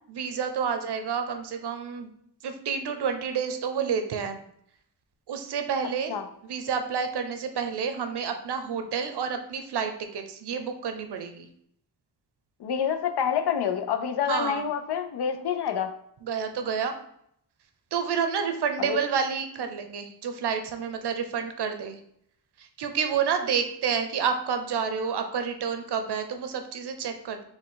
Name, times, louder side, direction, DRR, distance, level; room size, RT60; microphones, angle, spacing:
voice 1, 0.1-2.1 2.4-4.4 5.3-6.1 6.4-11.5 14.3-14.6 16.2-17.0 17.9-22.0 22.6-27.4, right 6 dB, 75° right, 7 dB, 0.7 m, -29 dB
voice 2, 12.6-15.9 18.8-19.0, left 8 dB, 75° left, 7 dB, 0.6 m, -27 dB
4.3 x 2.3 x 3.8 m, 0.70 s
cardioid pair, 65°, 40 cm